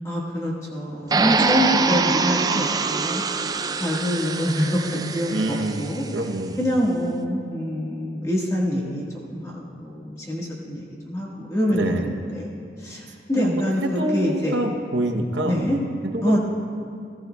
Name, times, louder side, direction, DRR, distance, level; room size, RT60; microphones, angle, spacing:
voice 1, 0.0-3.2 3.7-6.0 6.6-9.0 9.3-12.5 12.8-14.6 15.1-15.8 16.2-16.4, equal, 20° left, -4 dB, 1.5 m, -25 dB
sound 1, 1.1-6.1, right 4 dB, 20° right, 0.3 m, -24 dB
voice 2, 5.3-6.6 11.7-12.1 13.4-13.6 13.8-15.7 16.0-16.4, right 1 dB, 85° right, 5 dB, 0.9 m, -26 dB
16.0 x 15.0 x 2.3 m, 2.5 s
head